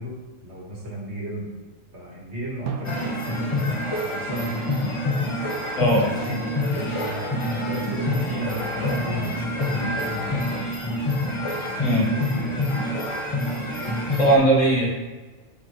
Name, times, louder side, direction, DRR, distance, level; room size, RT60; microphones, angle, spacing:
voice 1, 0.0-1.5 1.9-5.0 6.0-10.5 12.0-12.6, left 1 dB, 60° right, -4 dB, 2.0 m, -34 dB
Drum, 2.7-5.4, right 7 dB, 75° right, 0.9 m, -39 dB
sound 1, 2.8-14.4, left 1 dB, 30° left, 0.7 m, -27 dB
voice 2, 14.2-14.9, right 1 dB, 75° left, -2 dB, 1.7 m, -18 dB
7.9 x 4.4 x 3.1 m, 1.3 s
omnidirectional pair, 1.3 m